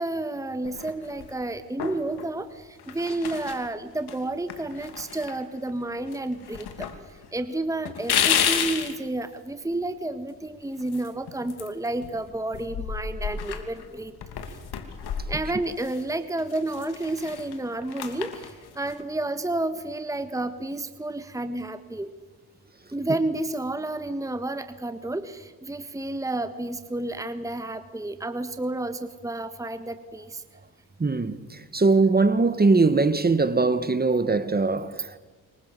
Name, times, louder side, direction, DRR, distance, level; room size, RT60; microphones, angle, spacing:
voice 1, 0.0-2.5 2.9-6.9 7.3-14.1 15.3-18.3 18.8-22.1 22.9-30.4, right 2 dB, 10° right, 1.5 m, -30 dB
sound 1, 0.6-1.3 1.8-2.3 2.8-3.7 4.1-4.2 4.5-5.8 6.1-7.0 7.2-7.3 7.8-9.0 10.8-12.2 12.5-16.0 16.4-19.0, left 8 dB, 80° left, 3.0 m, -31 dB
voice 2, 31.0-35.2, right 3 dB, 25° right, 1.6 m, -21 dB
27.0 x 23.5 x 6.9 m
cardioid pair, 80°, 39 cm